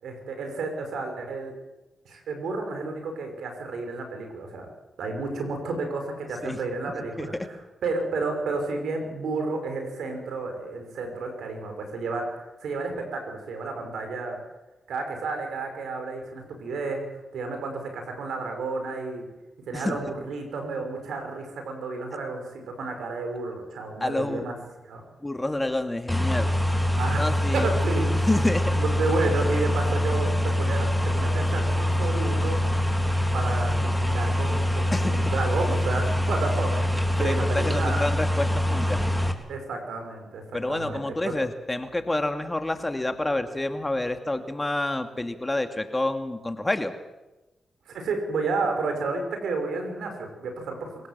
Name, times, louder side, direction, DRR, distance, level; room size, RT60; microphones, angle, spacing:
voice 1, 0.0-1.5 2.1-4.7 5.0-14.4 14.9-17.1 17.3-19.3 19.7-24.5 24.8-25.0 27.0-28.1 28.7-32.6 33.3-38.0 39.5-40.4 40.7-41.3 47.9-51.1, right 3 dB, 80° right, 5 dB, 5.7 m, -31 dB
voice 2, 24.0-24.4 25.2-26.5 27.2-27.7 28.2-28.7 34.9-35.2 37.2-39.0 40.5-46.9, left 2 dB, 20° left, 7 dB, 2.5 m, -28 dB
sound 1, 26.1-39.3, left 1 dB, ahead, 3.6 m, -24 dB
26.5 x 17.5 x 7.6 m, 1.0 s
supercardioid pair, 45°, 0 cm